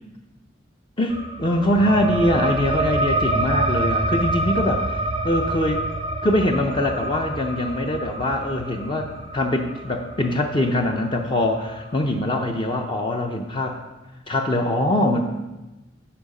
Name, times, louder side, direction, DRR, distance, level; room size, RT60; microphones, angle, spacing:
voice 1, 1.0-4.8 5.2-5.8 6.2-13.8 14.3-15.2, left 1 dB, 25° left, 3 dB, 0.5 m, -23 dB
sound 1, 1.1-12.2, right 2 dB, 25° right, 0.4 m, -27 dB
8.5 x 4.9 x 5.4 m, 1.1 s
head